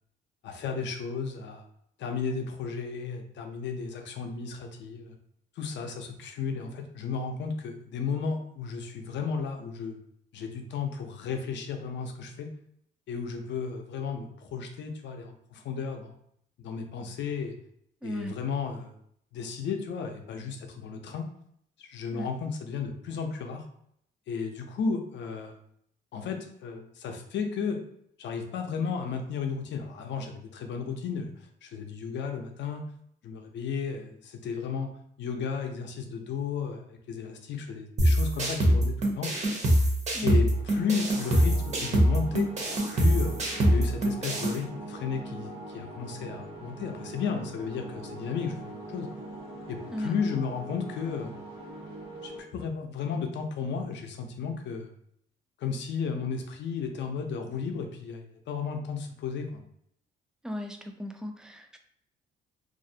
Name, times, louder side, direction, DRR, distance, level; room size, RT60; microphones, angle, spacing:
voice 1, 0.4-1.6 2.0-5.2 5.6-10.0 10.3-12.5 13.1-16.1 16.6-17.6 18.0-18.9 19.3-21.3 21.8-23.6 24.3-25.6 26.1-27.8 28.2-31.3 31.6-32.8 33.2-34.9 35.2-39.3 40.2-42.5 42.9-43.3 43.7-49.1 49.7-51.3 52.2-54.9 55.6-59.6, left 5 dB, 65° left, 5 dB, 0.5 m, -34 dB
voice 2, 18.0-18.3 22.1-22.3 40.1-40.4 49.9-50.1 60.4-61.8, left 1 dB, 5° right, 5 dB, 0.3 m, -35 dB
sound 1, 38.0-44.6, equal, 35° right, 0.7 m, -24 dB
sound 2, 40.5-52.4, right 1 dB, 65° right, 1.0 m, -42 dB
2.4 x 2.0 x 2.6 m, 0.70 s
cardioid pair, 90°, 20 cm